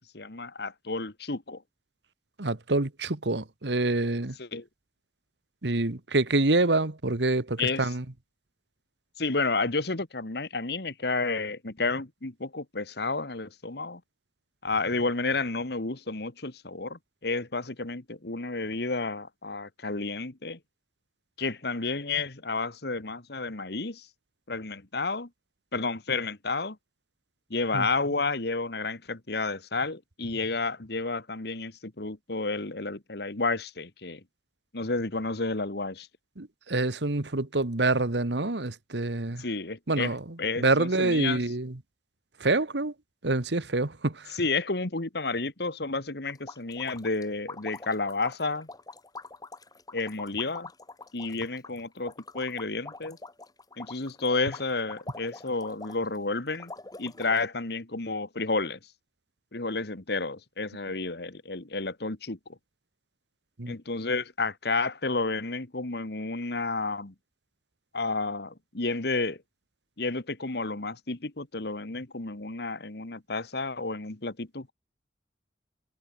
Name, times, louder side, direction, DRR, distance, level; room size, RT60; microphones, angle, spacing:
voice 1, 0.1-1.6 4.4-4.7 7.6-7.9 9.2-14.0 14.6-20.6 21.4-24.1 24.5-25.3 25.7-26.8 27.5-34.2 34.7-36.1 39.4-41.4 44.3-48.7 49.9-50.7 51.1-53.2 53.8-56.7 57.0-58.8 59.5-62.4 63.7-67.1 67.9-69.4 70.0-74.7, left 3 dB, 65° left, 1.8 m, -31 dB
voice 2, 2.4-4.3 5.6-8.0 27.7-27.9 36.4-39.4 39.9-40.2 40.6-41.7 42.4-42.9 43.2-44.2 63.6-63.7, right 2 dB, 75° right, 1.5 m, -26 dB
sound 1, 46.3-56.2 56.5-57.5, left 3 dB, 20° left, 2.8 m, -44 dB
head